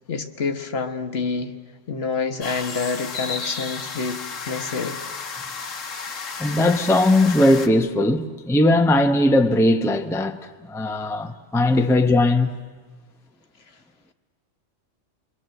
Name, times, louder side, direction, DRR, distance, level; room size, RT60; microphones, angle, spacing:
voice 1, 0.1-1.5 1.9-5.0, left 4 dB, 55° left, 1.3 m, -27 dB
sound 1, 2.4-7.7, left 5 dB, 75° left, 1.7 m, -33 dB
voice 2, 6.4-10.4 10.7-12.5, left 1 dB, 5° left, 0.7 m, -19 dB
28.5 x 22.5 x 7.7 m
omnidirectional pair, 1.3 m